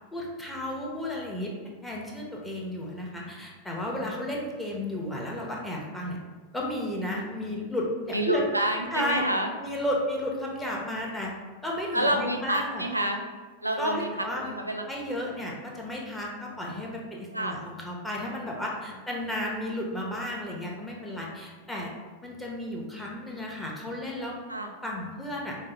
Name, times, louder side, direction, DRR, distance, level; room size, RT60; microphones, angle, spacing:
voice 1, 0.1-1.5 1.8-6.2 6.5-8.5 8.9-9.2 9.6-11.3 11.6-12.8 13.8-14.5 14.9-21.9 22.2-24.4 24.8-25.6, left 1 dB, 10° left, -3 dB, 0.7 m, -33 dB
voice 2, 8.1-9.5 11.9-13.4 13.6-15.2 17.3-17.6 24.5-24.7, right 1 dB, 85° right, 3 dB, 0.3 m, -29 dB
4.3 x 2.0 x 3.2 m, 1.4 s
figure-of-eight pair, 90°, 0 cm